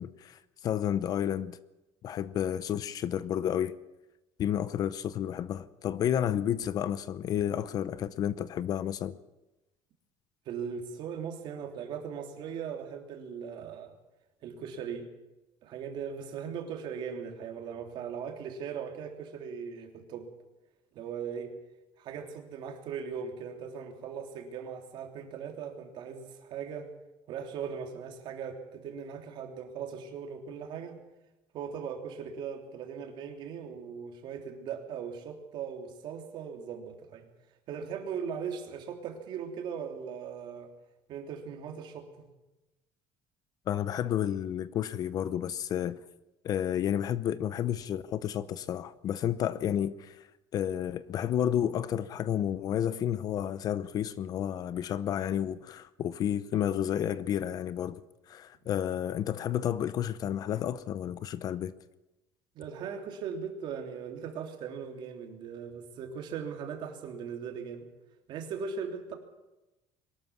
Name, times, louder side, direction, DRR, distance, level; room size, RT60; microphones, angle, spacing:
voice 1, 0.0-1.6 2.0-3.7 4.4-9.2 43.7-46.0 46.4-50.3 50.5-58.0 58.3-61.7, left 10 dB, 35° left, 0.7 m, -31 dB
voice 2, 10.4-13.9 14.4-15.1 15.6-20.3 20.9-21.5 22.0-26.9 27.3-31.0 31.5-37.3 37.7-40.7 41.1-42.3 62.5-67.9 68.3-69.2, right 7 dB, 50° right, 3.3 m, -39 dB
22.5 x 13.0 x 9.6 m
cardioid pair, 170°, 10 cm